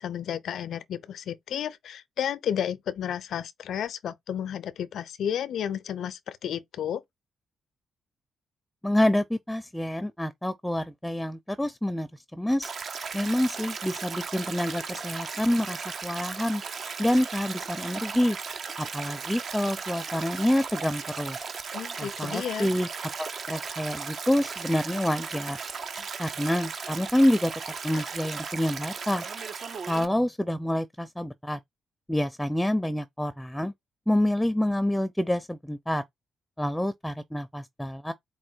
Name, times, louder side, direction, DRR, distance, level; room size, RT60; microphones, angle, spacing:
voice 1, 0.0-7.0 21.7-22.7 27.9-28.0, left 9 dB, 70° left, 0.5 m, -32 dB
voice 2, 8.8-12.7 13.1-16.6 17.0-18.4 18.8-21.5 22.0-22.9 23.2-25.6 26.2-27.5 27.8-29.3 29.9-31.6 32.1-33.7 34.1-36.0 36.6-38.1, left 1 dB, 5° left, 0.5 m, -27 dB
Stream, 12.6-30.1, right 5 dB, 60° right, 0.7 m, -36 dB
4.3 x 2.2 x 4.4 m
hypercardioid pair, 45°, 0 cm